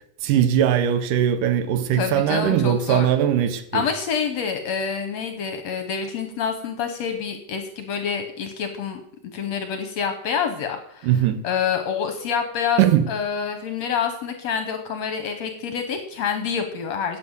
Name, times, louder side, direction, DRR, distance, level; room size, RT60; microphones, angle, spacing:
voice 1, 0.2-3.8 11.0-11.4 12.8-13.1, right 10 dB, 75° right, 2.3 m, -20 dB
voice 2, 1.9-3.1 3.7-9.0 9.3-11.1 11.4-12.8 13.1-17.2, left 7 dB, 65° left, 1.8 m, -27 dB
10.0 x 7.6 x 8.0 m
omnidirectional pair, 3.9 m